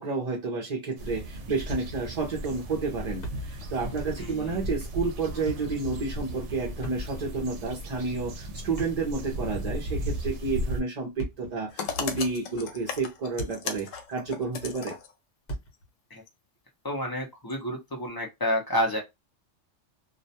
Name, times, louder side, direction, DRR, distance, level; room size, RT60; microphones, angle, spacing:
voice 1, 0.0-14.9, right 4 dB, 45° right, 0.5 m, -31 dB
sound 1, 1.0-10.8, equal, 70° right, 0.8 m, -36 dB
Thump thud, 1.7-2.2 2.5-2.6 3.0-3.8 4.0-4.2 5.2-5.8 6.8-7.4 8.6-9.6 11.0-11.6 12.3-12.5 13.0-13.8 14.1-14.2 15.5-15.9, right 1 dB, 50° left, 1.0 m, -39 dB
voice 2, 4.2-4.6 16.1-16.2 16.8-19.0, left 1 dB, 30° left, 0.4 m, -29 dB
sound 2, 11.7-15.1 16.3-16.4 17.5-17.6, left 6 dB, 85° left, 1.0 m, -36 dB
2.4 x 2.1 x 2.7 m
omnidirectional pair, 1.3 m